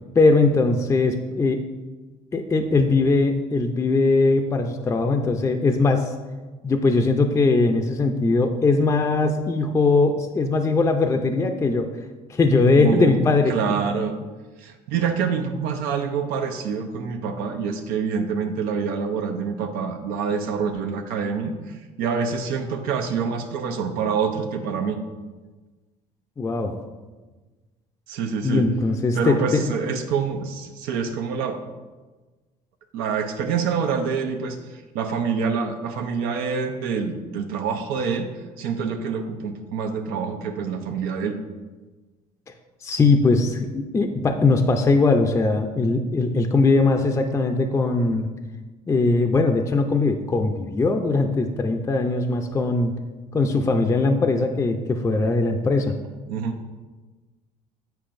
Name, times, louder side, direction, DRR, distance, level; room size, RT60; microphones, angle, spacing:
voice 1, 0.2-1.6 2.3-6.1 6.6-11.9 12.3-13.8 26.4-26.8 28.4-29.7 42.8-48.3 48.9-52.9 53.3-56.0, left 3 dB, 20° left, 4 dB, 0.4 m, -20 dB
voice 2, 12.7-13.1 13.5-14.1 14.6-25.0 28.1-28.6 29.1-31.6 32.9-38.3 38.6-41.4 56.3-56.5, right 6 dB, 85° right, 4 dB, 0.6 m, -26 dB
8.8 x 4.5 x 2.5 m, 1.3 s
cardioid pair, 105°, 15 cm